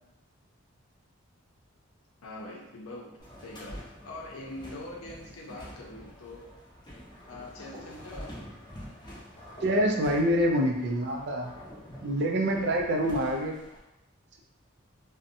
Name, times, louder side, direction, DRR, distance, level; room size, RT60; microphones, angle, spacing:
voice 1, 2.2-6.5 7.3-8.4, left 2 dB, 85° left, -2 dB, 0.6 m, -43 dB
sound 1, 3.2-13.8, equal, 20° left, 0.5 m, -47 dB
voice 2, 9.6-11.5 12.0-13.5, equal, 55° right, 2 dB, 0.4 m, -26 dB
2.6 x 2.1 x 2.6 m, 0.89 s
head